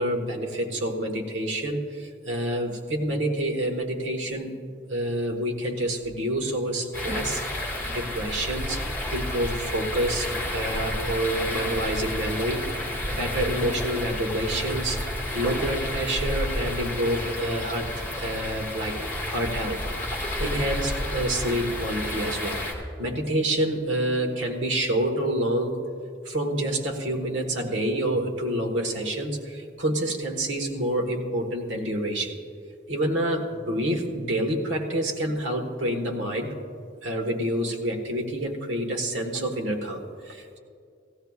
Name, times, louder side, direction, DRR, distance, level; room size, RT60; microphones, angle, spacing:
voice 1, 0.0-4.5 4.9-7.4 7.9-8.8 9.1-15.0 15.3-19.0 19.3-19.8 20.4-22.6 23.0-25.8 26.2-32.4 32.9-36.5 37.0-40.6, right 1 dB, 85° right, 2 dB, 1.4 m, -28 dB
sound 1, 6.9-22.7, left 1 dB, 10° left, 2.2 m, -31 dB
17.0 x 15.5 x 2.4 m, 2.3 s
head